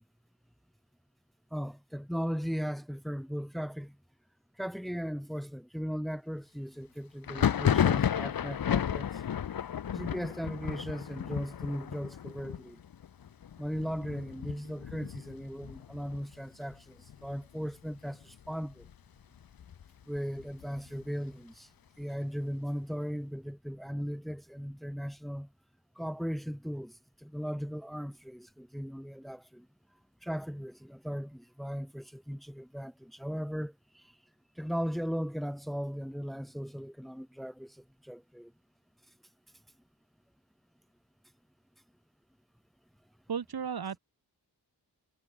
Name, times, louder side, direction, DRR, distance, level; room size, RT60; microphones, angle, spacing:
voice 1, 1.5-4.0 4.6-9.2 9.9-12.8 13.6-18.8 20.1-21.7 22.0-25.5 26.0-29.7 30.2-34.1 34.6-38.5, equal, ahead, 2.6 m, -37 dB
Thunder, 7.2-16.7 17.0-17.7 17.9-18.9 19.3-21.0, left 9 dB, 60° left, 1.0 m, -33 dB
voice 2, 43.3-44.0, right 7 dB, 65° right, 4.3 m, -34 dB
wide cardioid pair, 135°, 41 cm